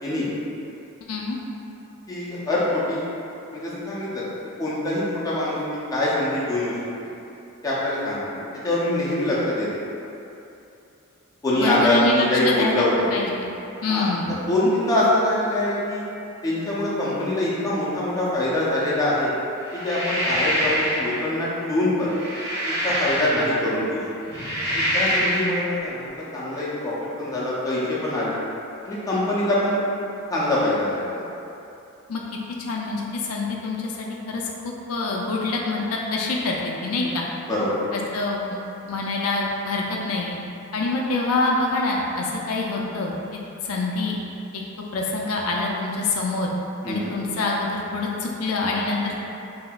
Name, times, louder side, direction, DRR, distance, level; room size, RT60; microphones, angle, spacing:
voice 1, 1.1-1.4 11.6-12.8 13.1-13.5 13.8-14.4 32.1-32.2 32.6-37.3 37.9-38.6 38.9-40.4 40.7-43.1 43.6-44.2 44.5-44.6 44.9-46.5 46.9-49.2, left 3 dB, 75° left, -2 dB, 0.4 m, -26 dB
voice 2, 2.1-3.0 3.5-4.3 4.6-5.6 5.9-6.7 7.6-9.7 11.4-12.9 13.9-14.1 14.5-16.0 16.4-19.3 19.7-22.1 22.8-24.0 24.7-28.4 28.8-29.8 30.3-31.3 37.4-37.9 46.8-47.1, left 1 dB, 15° left, -8 dB, 0.6 m, -24 dB
sound 1, 19.7-21.2 22.0-23.7 24.2-25.6, equal, 50° right, 1.2 m, -25 dB
5.1 x 2.8 x 2.3 m, 2.7 s
head